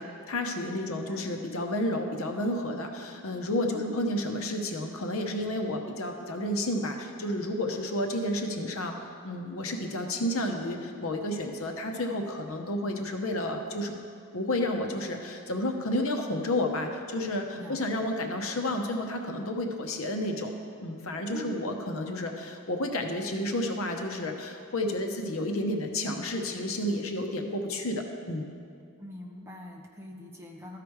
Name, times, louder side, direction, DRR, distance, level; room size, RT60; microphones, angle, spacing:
voice 1, 0.0-9.0 9.2-14.0 14.3-20.5 20.8-28.5, left 1 dB, 80° left, 4 dB, 0.9 m, -31 dB
voice 2, 0.7-1.3 3.7-3.9 17.5-18.2 21.3-21.7 29.0-30.8, left 1 dB, 10° right, 0 dB, 0.8 m, -43 dB
13.0 x 5.0 x 4.7 m, 2.4 s
head